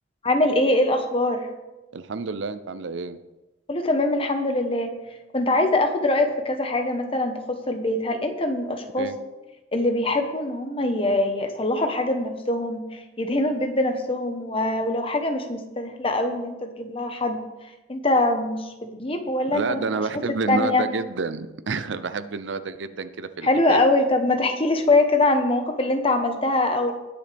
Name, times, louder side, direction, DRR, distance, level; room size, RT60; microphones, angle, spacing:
voice 1, 0.2-1.5 3.7-4.9 5.3-9.1 9.7-17.4 17.9-18.7 19.0-19.9 20.5-20.9 23.4-26.9, left 2 dB, 30° left, 6 dB, 1.1 m, -23 dB
voice 2, 1.9-3.2 9.0-9.2 19.5-23.8, right 4 dB, 65° right, 12 dB, 0.6 m, -29 dB
19.5 x 6.9 x 3.4 m, 1.1 s
head